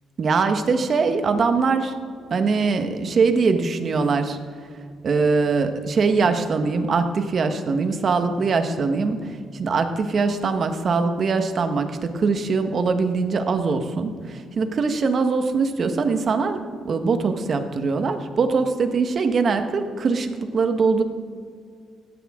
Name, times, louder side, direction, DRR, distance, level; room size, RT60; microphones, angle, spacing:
voice 1, 0.2-1.9 2.3-4.4 5.0-16.6 16.8-21.0, right 4 dB, 50° right, 7 dB, 1.4 m, -22 dB
17.0 x 13.0 x 3.8 m, 2.1 s
cardioid pair, 90°, 0 cm